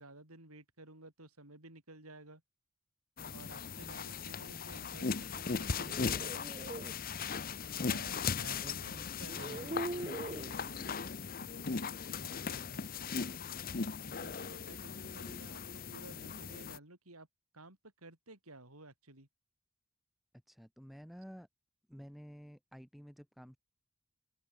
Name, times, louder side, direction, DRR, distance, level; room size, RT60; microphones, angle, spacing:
voice 1, 0.0-2.4 3.3-6.8 7.7-8.9 9.2-11.3 11.5-12.6 13.6-17.3 17.5-19.3, right 2 dB, 90° right, 7.5 m, -54 dB
sound 1, 3.2-16.8, left 5 dB, 40° left, 0.8 m, -38 dB
sound 2, 5.6-6.9 8.4-8.5 9.2-10.5, right 2 dB, 25° right, 0.7 m, -42 dB
voice 2, 7.7-9.1 9.3-9.8 20.5-21.5 21.9-23.6, equal, ahead, 7.6 m, -52 dB
open air
head